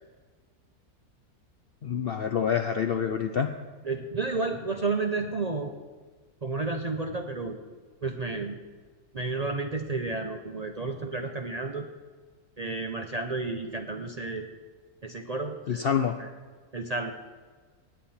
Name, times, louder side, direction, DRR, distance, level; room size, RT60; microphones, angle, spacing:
voice 1, 1.8-3.5 15.7-16.2, left 7 dB, 60° left, 6 dB, 0.6 m, -27 dB
voice 2, 3.8-5.7 6.4-7.6 8.0-8.6 9.1-11.9 12.6-14.5 15.0-15.9 16.2-16.3 16.7-17.1, right 3 dB, 40° right, 4 dB, 0.6 m, -31 dB
17.5 x 9.1 x 4.3 m, 1.4 s
omnidirectional pair, 1.6 m